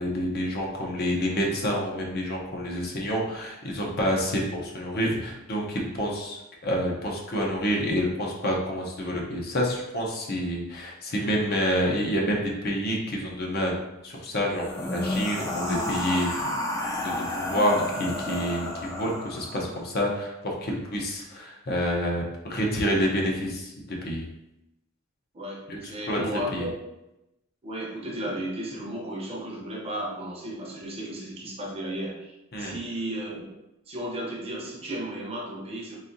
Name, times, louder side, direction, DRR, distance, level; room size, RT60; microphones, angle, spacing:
voice 1, 0.0-16.5 17.0-24.3 25.7-25.8 26.1-26.7 32.5-32.8, equal, 50° left, -1 dB, 0.7 m, -28 dB
sound 1, 14.5-19.7, left 1 dB, 15° left, 0.4 m, -31 dB
voice 2, 25.3-26.8 27.6-33.3 33.9-36.0, right 1 dB, 30° right, -2 dB, 0.7 m, -34 dB
4.0 x 2.7 x 2.6 m, 0.91 s
head